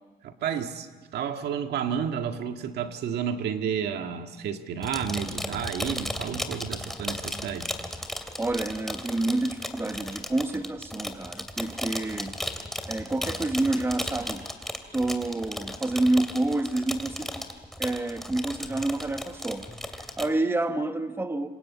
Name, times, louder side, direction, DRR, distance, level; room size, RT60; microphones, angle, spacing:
voice 1, 0.2-7.7, right 8 dB, 80° right, 6 dB, 1.8 m, -31 dB
sound 1, 4.8-20.3, left 1 dB, ahead, 2.6 m, -35 dB
voice 2, 8.4-12.4 12.9-14.5 14.9-17.4 17.8-21.5, right 2 dB, 15° right, 8 dB, 1.3 m, -28 dB
26.5 x 26.5 x 8.4 m, 1.4 s
cardioid pair, 120°, 17 cm